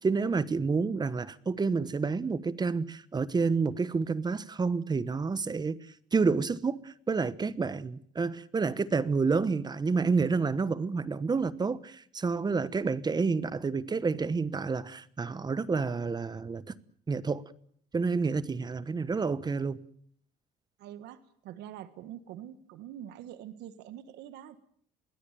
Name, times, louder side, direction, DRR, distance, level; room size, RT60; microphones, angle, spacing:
voice 1, 0.0-5.9 6.1-16.6 17.1-17.4 17.9-19.8, right 4 dB, 25° right, 1.1 m, -29 dB
voice 2, 20.8-24.6, right 11 dB, 85° right, 1.5 m, -45 dB
22.5 x 17.0 x 9.1 m
cardioid pair, 110°, 17 cm